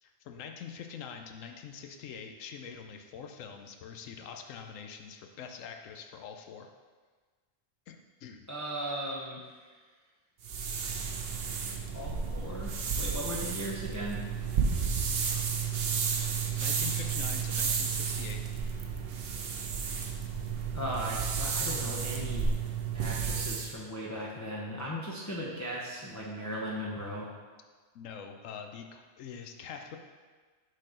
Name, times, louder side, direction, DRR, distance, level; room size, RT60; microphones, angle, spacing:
voice 1, 0.0-6.7 7.9-8.5 16.6-18.4 27.9-30.0, left 7 dB, 80° left, 5 dB, 1.0 m, -44 dB
voice 2, 8.5-9.4 10.9-11.1 11.9-14.2 20.7-22.5 22.9-27.3, equal, 15° left, -6 dB, 0.7 m, -37 dB
sound 1, 10.4-23.7, right 6 dB, 55° right, 0.8 m, -32 dB
6.4 x 4.2 x 4.9 m, 1.4 s
omnidirectional pair, 1.3 m